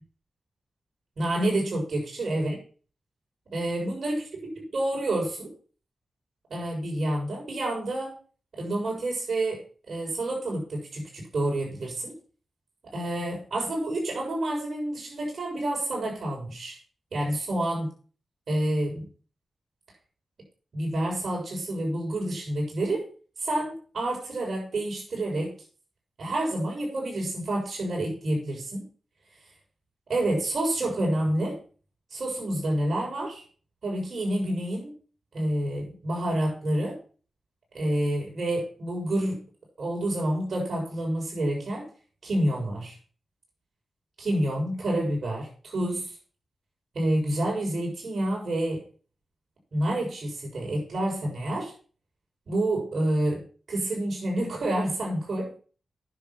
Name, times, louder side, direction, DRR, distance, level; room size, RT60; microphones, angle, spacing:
voice 1, 1.2-2.6 3.5-4.2 4.6-5.5 6.5-8.2 8.6-12.1 12.9-16.8 17.1-17.9 18.5-19.1 20.7-23.1 23.4-25.5 26.2-28.9 30.1-31.6 32.1-33.4 33.8-34.9 35.3-37.0 37.7-39.4 39.8-41.9 42.2-43.0 44.2-46.1 46.9-48.8 49.7-51.7 52.5-53.4 53.7-55.6, right 1 dB, 65° right, -2 dB, 6.0 m, -28 dB
10.0 x 7.4 x 6.0 m, 0.40 s
cardioid pair, 65°, 0 cm